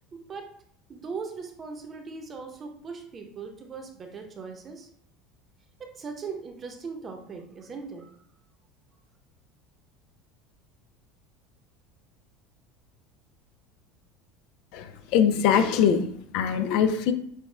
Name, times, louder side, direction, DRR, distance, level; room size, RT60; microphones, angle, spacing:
voice 1, 0.1-0.5 0.9-4.9 5.8-8.1, right 5 dB, 30° right, 4 dB, 0.8 m, -39 dB
voice 2, 14.7-17.1, left 8 dB, 65° left, 9 dB, 0.4 m, -23 dB
6.4 x 2.3 x 3.3 m, 0.65 s
supercardioid pair, 125°, 0 cm